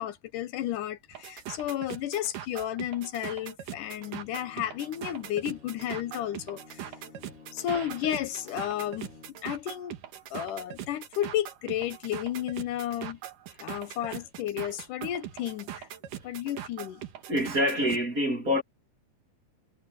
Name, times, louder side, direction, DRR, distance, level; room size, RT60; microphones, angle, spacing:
voice 1, 0.0-6.9 7.5-9.1 9.4-10.0 10.3-13.2 13.6-15.9 16.2-17.0, left 12 dB, 75° left, 2.4 m, -32 dB
sound 1, 1.1-18.1, right 10 dB, 75° right, 3.2 m, -41 dB
Bowed string instrument, 3.7-9.7, left 4 dB, 40° left, 4.8 m, -54 dB
voice 2, 17.3-18.6, equal, 25° right, 3.0 m, -26 dB
omnidirectional pair, 3.8 m